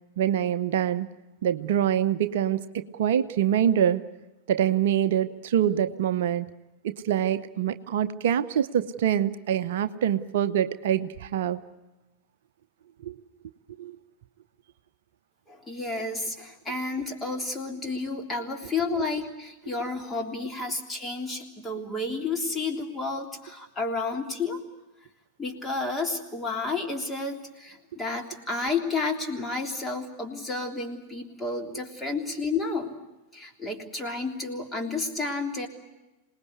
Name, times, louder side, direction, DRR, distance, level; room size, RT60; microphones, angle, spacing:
voice 1, 0.2-1.1 1.4-4.0 4.5-6.5 6.8-11.6 13.0-13.2 13.8-14.0, right 10 dB, 55° right, 11 dB, 0.7 m, -25 dB
voice 2, 15.5-24.6 25.4-33.0 33.3-35.7, left 3 dB, 10° left, 2 dB, 3.4 m, -31 dB
26.5 x 19.5 x 8.2 m, 1.0 s
figure-of-eight pair, 90°, 0 cm